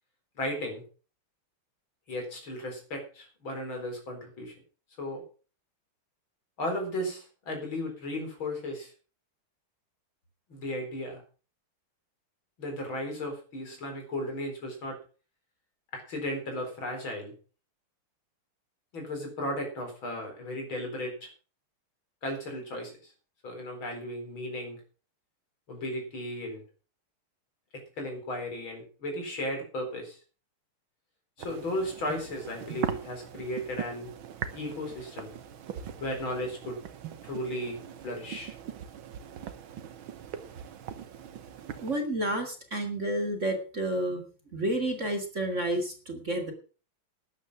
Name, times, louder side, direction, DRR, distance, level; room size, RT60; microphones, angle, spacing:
voice 1, 0.4-0.8 2.1-4.5 5.0-5.2 6.6-8.9 10.5-11.2 12.6-15.0 15.9-17.3 18.9-21.3 22.2-23.1 23.4-24.8 25.7-26.6 27.7-30.2 31.4-34.1 34.5-35.3 36.0-36.8 37.3-38.6, left 1 dB, 65° left, 3 dB, 5.0 m, -35 dB
sound 1, 31.4-42.0, right 9 dB, 70° right, 1.9 m, -41 dB
voice 2, 41.8-44.3 44.5-46.5, right 1 dB, 35° right, 4 dB, 2.3 m, -30 dB
12.5 x 9.7 x 6.0 m, 0.38 s
omnidirectional pair, 2.4 m